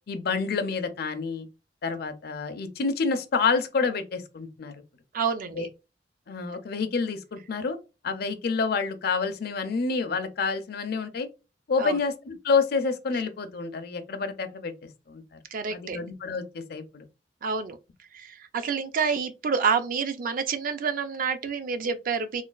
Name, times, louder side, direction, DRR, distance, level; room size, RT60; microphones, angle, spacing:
voice 1, 0.1-1.5 1.8-4.8 5.6-5.7 6.3-7.8 8.0-11.3 11.7-14.7 15.1-15.4 15.7-17.0, left 4 dB, 60° left, 0.5 m, -28 dB
voice 2, 5.1-5.7 11.8-12.0 15.5-16.0 17.4-17.8 18.1-22.4, right 5 dB, 50° right, 0.4 m, -28 dB
3.1 x 2.2 x 2.3 m
head